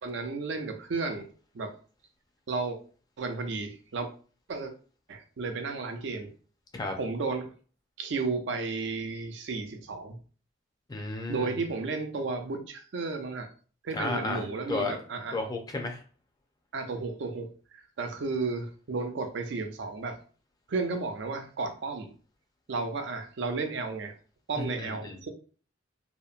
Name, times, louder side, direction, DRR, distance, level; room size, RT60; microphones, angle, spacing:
voice 1, 0.0-1.3 1.5-1.7 2.5-2.8 3.2-4.1 4.5-4.7 5.1-6.3 7.0-7.5 8.0-10.2 11.3-13.5 13.8-15.4 16.7-20.2 20.7-22.1 22.7-24.1 24.5-25.3, right 4 dB, 65° right, 5 dB, 0.4 m, -33 dB
voice 2, 10.9-11.5 13.9-15.0 15.3-16.0 24.6-25.2, left 2 dB, 20° left, 3 dB, 0.4 m, -33 dB
2.8 x 2.1 x 2.4 m, 0.40 s
head